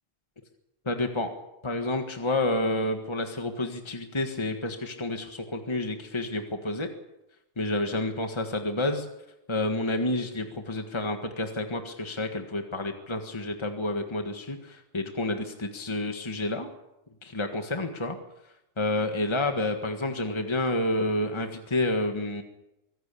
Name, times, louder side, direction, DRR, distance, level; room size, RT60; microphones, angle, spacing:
voice 1, 0.8-1.3 1.6-6.9 7.6-9.1 9.5-16.7 17.2-18.2 18.8-22.4, left 2 dB, 25° left, 5 dB, 1.7 m, -29 dB
24.0 x 16.0 x 8.5 m, 0.92 s
omnidirectional pair, 1.2 m